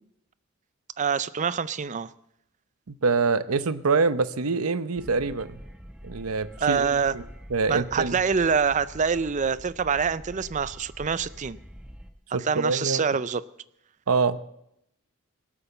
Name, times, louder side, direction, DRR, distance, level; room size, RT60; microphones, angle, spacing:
voice 1, 1.0-2.1 6.6-7.1 7.7-11.6 12.4-13.4, right 6 dB, 35° right, 0.4 m, -25 dB
voice 2, 2.9-5.6 6.0-7.2 7.5-8.2 12.3-13.0 14.1-14.4, right 4 dB, 85° right, 0.7 m, -25 dB
sound 1, 5.0-12.1, equal, 5° right, 1.0 m, -45 dB
18.0 x 8.5 x 7.0 m
head